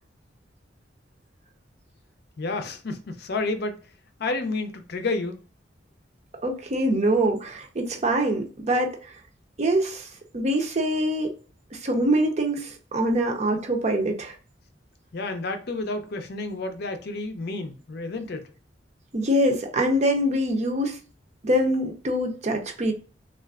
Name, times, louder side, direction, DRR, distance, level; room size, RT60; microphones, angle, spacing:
voice 1, 2.4-3.8 4.2-5.4 15.1-18.5, left 3 dB, 60° left, 0.5 m, -30 dB
voice 2, 6.4-9.1 9.6-10.1 10.3-11.3 11.7-14.3 19.1-21.0 21.4-22.9, right 1 dB, 40° right, 0.6 m, -24 dB
3.3 x 2.4 x 2.3 m
head